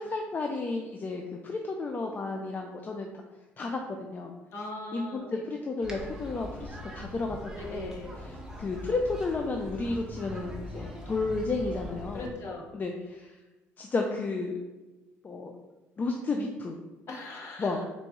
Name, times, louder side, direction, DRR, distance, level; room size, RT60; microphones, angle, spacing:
voice 1, 0.0-3.1 3.6-4.3 4.9-12.3 12.7-13.3 13.8-14.6 15.2-15.5 16.0-16.8 17.6-17.8, left 3 dB, 35° left, 2 dB, 0.4 m, -32 dB
voice 2, 4.5-5.4 7.5-8.2 12.1-12.7 17.1-17.8, left 2 dB, 55° left, -1 dB, 1.1 m, -40 dB
sound 1, 5.8-12.3, equal, 10° right, 0.9 m, -41 dB
3.9 x 2.8 x 3.5 m, 1.1 s
supercardioid pair, 90°, 5 cm